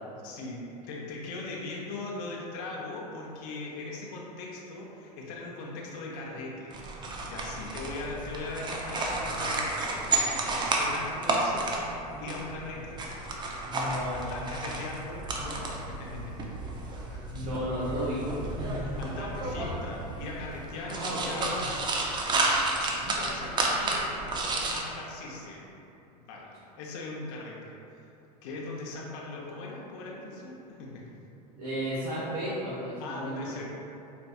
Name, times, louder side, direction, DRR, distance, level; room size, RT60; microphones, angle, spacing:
voice 1, 0.2-6.8 7.3-11.7 12.2-13.0 14.1-16.3 17.1-17.5 19.0-21.9 22.7-25.6 26.1-27.7 28.4-31.0 33.0-33.6, left 2 dB, 55° left, -3 dB, 0.7 m, -40 dB
sound 1, 6.7-24.8, right 2 dB, 20° right, 0.5 m, -32 dB
voice 2, 13.7-14.4 17.0-19.0 20.8-21.5 31.5-33.6, equal, 65° right, -9 dB, 0.8 m, -34 dB
sound 2, 14.0-20.8, right 2 dB, 50° right, 1.5 m, -42 dB
4.4 x 2.5 x 2.3 m, 2.8 s
hypercardioid pair, 95°, 21 cm